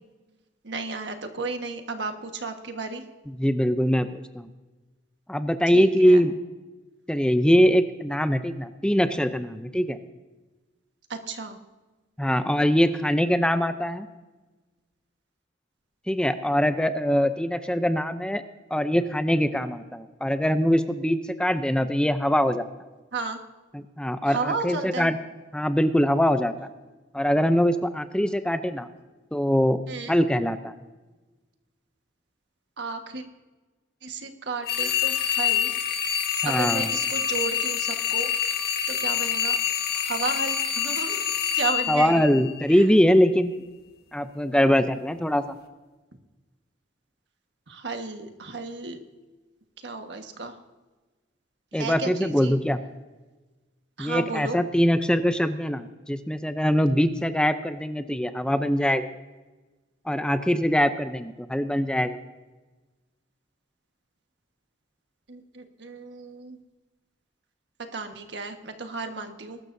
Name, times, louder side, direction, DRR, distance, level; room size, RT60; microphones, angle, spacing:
voice 1, 0.6-3.0 5.7-6.2 11.1-11.6 23.1-23.4 24.2-25.1 29.9-30.1 32.8-33.2 34.0-35.7 36.4-38.3 38.9-39.6 39.9-41.3 41.5-42.2 42.7-42.9 47.7-49.0 49.8-50.5 51.7-52.6 54.0-54.6 65.3-66.6 67.9-69.6, right 4 dB, 70° right, 5 dB, 1.5 m, -33 dB
voice 2, 3.3-4.5 5.3-6.3 7.1-10.0 12.2-14.1 16.1-18.4 18.7-22.6 23.7-25.2 25.5-26.5 27.1-28.9 29.3-29.8 30.1-30.8 36.4-36.9 41.9-43.6 44.1-45.5 51.7-52.8 54.0-59.1 60.1-62.2, equal, 5° left, 9 dB, 0.5 m, -23 dB
sound 1, 34.7-42.8, left 8 dB, 60° left, 1.4 m, -26 dB
21.5 x 12.5 x 2.7 m, 1.2 s
head